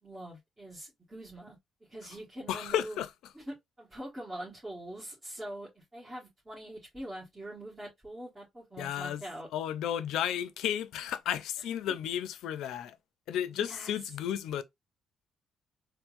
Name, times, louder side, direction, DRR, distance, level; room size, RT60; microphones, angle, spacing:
voice 1, 0.0-1.6 1.9-3.0 3.3-9.5 11.8-11.9 13.5-13.9, right 1 dB, 20° right, 1.4 m, -43 dB
voice 2, 2.5-3.1 8.8-9.2 9.5-13.0 13.3-14.6, left 10 dB, 85° left, 0.4 m, -33 dB
4.3 x 2.0 x 2.5 m
cardioid pair, 90°, 0 cm